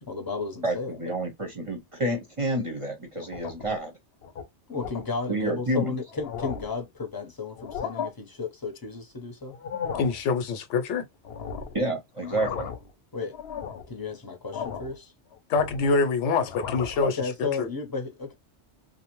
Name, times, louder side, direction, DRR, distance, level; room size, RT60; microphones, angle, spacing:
voice 1, 0.0-1.0 4.7-9.5 13.1-13.4 13.9-15.1 17.0-18.3, left 4 dB, 25° left, 0.6 m, -33 dB
voice 2, 0.6-4.0 5.3-5.9 11.7-12.7, right 1 dB, 35° right, 0.6 m, -29 dB
sound 1, 3.2-3.8 4.2-4.4 4.8-5.0 5.7-5.8 6.1-6.8 7.5-8.1 9.5-10.2 11.2-11.8 12.2-12.9 13.3-13.9 14.5-15.0 15.3-16.0 16.4-17.0, left 7 dB, 70° left, 0.8 m, -35 dB
voice 3, 10.0-11.0 15.5-17.7, left 4 dB, 90° left, 0.9 m, -25 dB
2.6 x 2.1 x 2.9 m
omnidirectional pair, 1.2 m